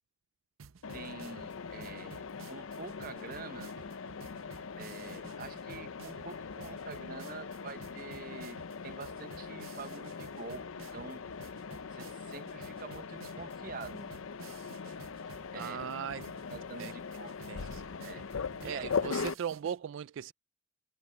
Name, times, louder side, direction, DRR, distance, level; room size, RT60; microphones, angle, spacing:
sound 1, 0.6-19.8, right 5 dB, 90° right, 0.7 m, -53 dB
Mechanisms, 0.8-19.3, left 5 dB, 85° left, 0.6 m, -41 dB
voice 1, 0.9-3.7 4.8-10.6 10.9-11.2 11.9-14.1 15.5-15.9 16.5-17.4 18.0-18.2 18.6-19.1, right 4 dB, 45° right, 0.7 m, -46 dB
voice 2, 15.5-16.3 16.8-16.9 17.5-17.9 18.6-20.3, right 8 dB, 70° right, 0.3 m, -38 dB
head